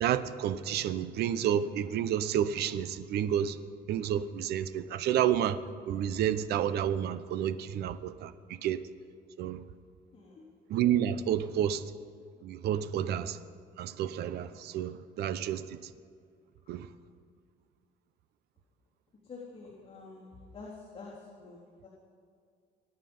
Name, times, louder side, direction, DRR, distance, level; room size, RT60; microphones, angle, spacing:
voice 1, 0.0-3.6 3.9-5.6 5.9-8.8 9.4-9.6 10.7-11.8 12.4-13.4 13.8-15.9 16.7-16.9, right 10 dB, 75° right, 0.8 m, -30 dB
voice 2, 10.1-10.5 19.2-20.2 20.5-21.1 21.4-21.9, left 4 dB, 35° left, 3.7 m, -47 dB
23.5 x 9.9 x 5.4 m
cardioid pair, 110°, 17 cm